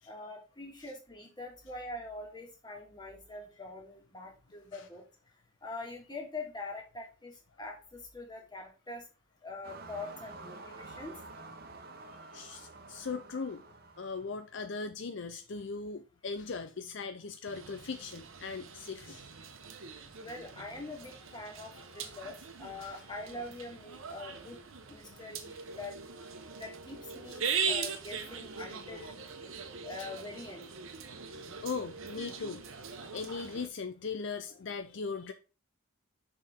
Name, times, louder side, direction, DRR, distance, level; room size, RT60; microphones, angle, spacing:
voice 1, 0.1-5.0 5.6-9.0 9.4-11.2 20.2-24.6 24.9-25.9 26.6-29.2 29.8-30.7, left 2 dB, 20° left, 1.8 m, -44 dB
sound 1, 9.6-14.6, right 3 dB, 45° right, 1.0 m, -49 dB
voice 2, 12.3-13.6 14.0-19.3 21.8-21.9 22.8-23.0 30.0-30.1 31.3-35.3, left 4 dB, 60° left, 0.5 m, -39 dB
sound 2, 17.4-33.7, right 6 dB, 75° right, 1.0 m, -41 dB
6.5 x 5.5 x 3.6 m
head